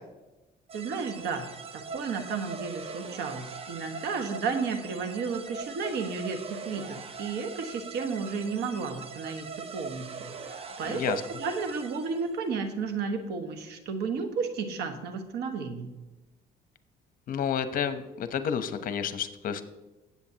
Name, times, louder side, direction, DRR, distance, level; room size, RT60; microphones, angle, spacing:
sound 1, 0.7-12.4, right 5 dB, 35° right, 0.9 m, -41 dB
voice 1, 0.7-1.5 1.7-15.9, right 5 dB, 75° right, 7 dB, 1.4 m, -33 dB
voice 2, 17.3-19.6, left 7 dB, 55° left, 11 dB, 0.9 m, -30 dB
18.0 x 8.0 x 2.9 m, 1.0 s
cardioid pair, 110°, 17 cm